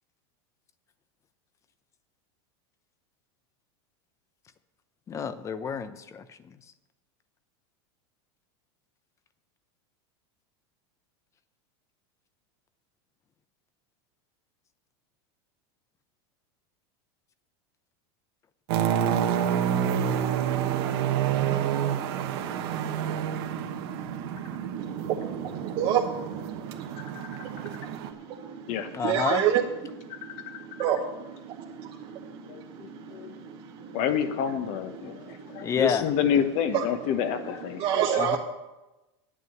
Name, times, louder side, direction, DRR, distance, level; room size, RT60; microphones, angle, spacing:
voice 1, 5.1-6.4 28.9-29.4 35.6-36.0 38.2-38.4, left 6 dB, 20° left, 0.7 m, -29 dB
sound 1, 18.7-28.1, right 9 dB, 65° right, 1.2 m, -28 dB
voice 2, 24.8-34.0 35.0-35.7 36.7-36.8 37.8-38.4, right 9 dB, 40° right, 1.0 m, -31 dB
voice 3, 30.1-30.6 32.5-33.3 33.9-38.2, left 8 dB, 50° left, 1.2 m, -29 dB
9.2 x 8.4 x 7.9 m
supercardioid pair, 145°, 14 cm